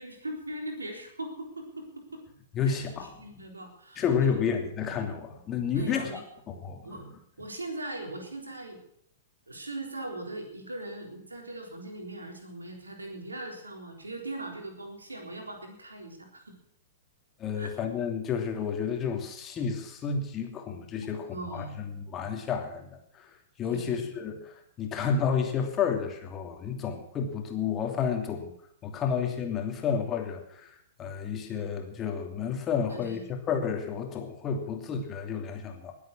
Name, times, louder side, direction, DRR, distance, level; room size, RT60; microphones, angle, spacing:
voice 1, 0.0-2.2 2.7-2.8 3.2-4.5 5.7-6.2 6.8-7.0 7.4-8.8 9.5-16.6 17.6-17.7 21.0-21.8 23.7-24.1 32.9-33.2, right 2 dB, 80° right, 3 dB, 3.9 m, -40 dB
voice 2, 2.5-3.4 4.0-7.0 17.4-23.3 23.6-28.5 28.8-35.9, left 6 dB, 25° left, 4 dB, 2.9 m, -31 dB
20.5 x 8.4 x 6.2 m, 0.70 s
figure-of-eight pair, 105°, 0 cm